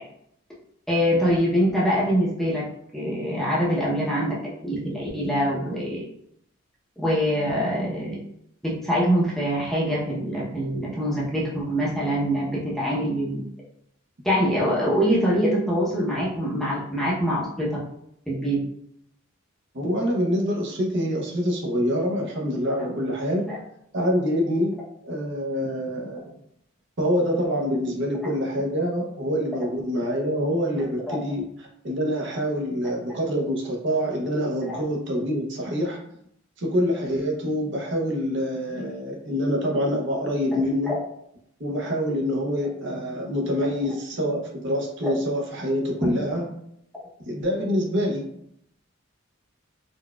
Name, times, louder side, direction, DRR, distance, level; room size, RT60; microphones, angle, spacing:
voice 1, 0.9-2.6 2.9-4.3 4.6-6.0 7.0-8.2 8.6-13.4 14.2-17.8 18.3-18.6 23.5-23.6 31.1-31.2 34.6-34.8 40.9-41.0 46.0-46.1, equal, ahead, -6 dB, 0.6 m, -24 dB
voice 2, 19.7-23.5 23.9-26.3 27.0-31.4 31.8-36.0 36.6-41.0 41.6-46.4 47.2-48.3, equal, 60° right, -1 dB, 0.7 m, -26 dB
4.0 x 2.3 x 2.2 m, 0.74 s
head